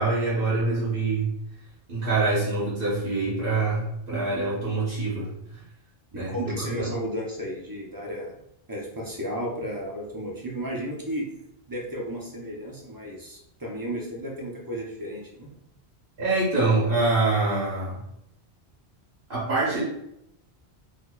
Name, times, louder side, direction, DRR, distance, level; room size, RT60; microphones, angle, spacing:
voice 1, 0.0-1.3 1.9-5.6 6.1-6.9 16.2-18.0 19.3-19.8, right 3 dB, 65° right, -7 dB, 1.1 m, -25 dB
voice 2, 6.1-8.3 8.7-11.3 11.7-15.5, equal, 25° right, -2 dB, 0.5 m, -33 dB
4.0 x 2.8 x 2.2 m, 0.80 s
omnidirectional pair, 1.1 m